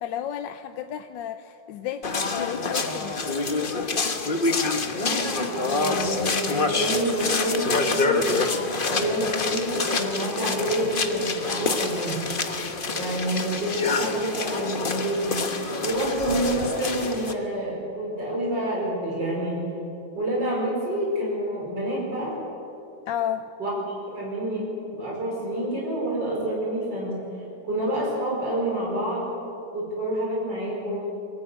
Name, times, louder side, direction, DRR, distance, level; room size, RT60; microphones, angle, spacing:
voice 1, 0.0-3.2 23.1-23.4, left 10 dB, 75° left, 9 dB, 1.3 m, -32 dB
sound 1, 2.0-17.3, left 3 dB, 30° left, 1.1 m, -27 dB
voice 2, 5.0-8.4 8.8-12.2 12.9-15.4 15.8-19.6 20.2-22.3 23.6-23.8 24.1-27.2 27.6-29.3 29.7-31.1, right 1 dB, 65° right, -4 dB, 5.6 m, -28 dB
23.5 x 14.5 x 9.1 m, 2.7 s
omnidirectional pair, 2.1 m